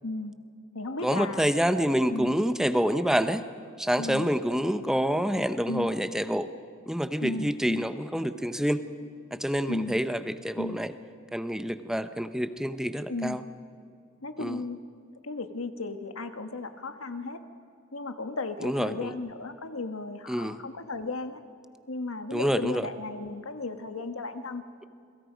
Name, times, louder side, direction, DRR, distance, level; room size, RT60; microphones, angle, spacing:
voice 1, 0.0-0.3 0.7-1.5 2.1-2.3 4.0-4.3 5.7-5.9 7.2-7.8 9.7-10.0 10.6-10.8 13.1-13.4 14.2-14.8 15.2-17.4 17.9-21.4 21.9-24.6, left 3 dB, 75° left, 8 dB, 1.4 m, -35 dB
voice 2, 1.0-3.4 3.8-6.5 6.9-8.8 9.3-10.9 11.3-13.4 14.4-14.6 18.6-19.1 20.3-20.6 22.3-22.9, equal, 5° right, 11 dB, 0.7 m, -27 dB
28.0 x 22.5 x 5.2 m, 2.4 s
head